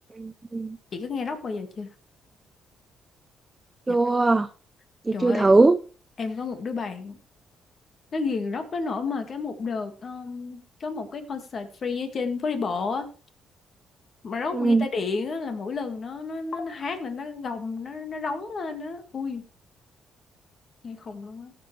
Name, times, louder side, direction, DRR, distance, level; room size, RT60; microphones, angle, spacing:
voice 1, 0.2-0.8 3.9-4.5 5.1-5.8 14.5-14.9, right 3 dB, 20° right, 0.6 m, -20 dB
voice 2, 0.9-1.9 3.9-4.0 5.1-5.5 6.2-7.2 8.1-13.1 14.2-19.4 20.8-21.5, left 4 dB, 50° left, 1.9 m, -31 dB
16.5 x 7.7 x 3.3 m
cardioid pair, 90°, 0 cm